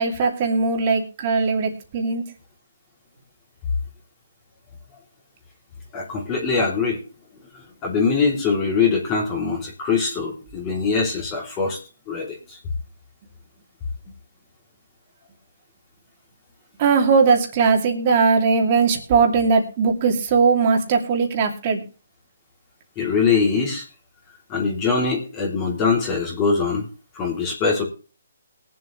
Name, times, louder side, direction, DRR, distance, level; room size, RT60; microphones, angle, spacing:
voice 1, 0.0-2.2 16.8-21.8, right 5 dB, 30° right, 3 dB, 2.6 m, -19 dB
voice 2, 5.9-7.0 7.5-11.8 12.1-12.6 23.0-23.8 24.5-26.9 27.1-27.8, left 5 dB, 20° left, -2 dB, 3.1 m, -22 dB
21.5 x 7.6 x 3.2 m, 0.35 s
hypercardioid pair, 160°, 0 cm